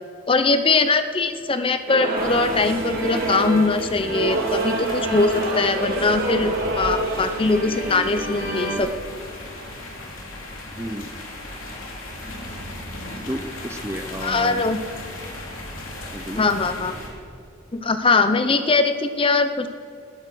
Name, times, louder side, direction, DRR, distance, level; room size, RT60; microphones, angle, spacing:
voice 1, 0.3-8.9 14.2-14.8 16.4-16.9 17.7-19.7, left 3 dB, 25° left, 10 dB, 0.6 m, -21 dB
sound 1, 1.9-8.8, right 2 dB, 45° right, 2.9 m, -27 dB
sound 2, 2.2-17.1, left 1 dB, 75° left, 3.2 m, -37 dB
voice 2, 10.7-11.1 13.3-14.6 16.1-16.4, right 1 dB, 15° right, 9 dB, 0.6 m, -32 dB
19.0 x 11.5 x 6.1 m, 2.6 s
head